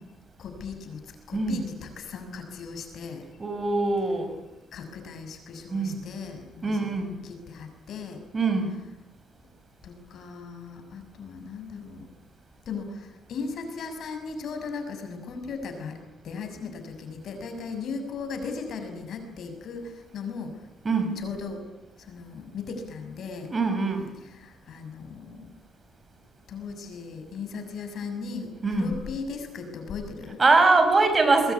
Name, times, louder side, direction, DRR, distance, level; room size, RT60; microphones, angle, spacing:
voice 1, 0.4-1.0 1.3-3.3 4.7-8.2 9.8-12.1 12.7-20.6 21.2-21.6 22.0-23.5 24.2-25.5 26.5-30.4, left 5 dB, 65° left, 6 dB, 6.6 m, -37 dB
voice 2, 1.3-1.6 3.4-4.3 5.7-6.0 6.6-7.2 8.3-8.7 20.8-21.2 23.5-24.1 28.6-29.0 30.4-31.5, right 3 dB, 30° right, 8 dB, 5.4 m, -23 dB
23.0 x 22.0 x 9.7 m, 0.98 s
cardioid pair, 90°, 0 cm